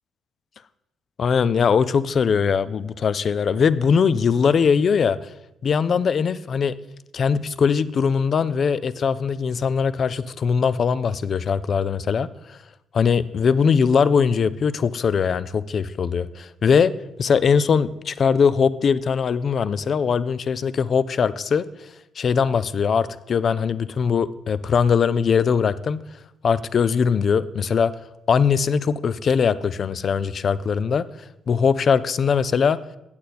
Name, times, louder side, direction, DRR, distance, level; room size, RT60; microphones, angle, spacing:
voice 1, 1.2-5.2 5.6-6.7 7.1-12.6 12.9-16.9 17.2-21.7 22.2-26.0 26.4-27.9 28.3-31.0 31.5-32.8, left 6 dB, 50° left, 15 dB, 0.4 m, -21 dB
8.5 x 7.9 x 4.2 m, 0.90 s
cardioid pair, 90°, 0 cm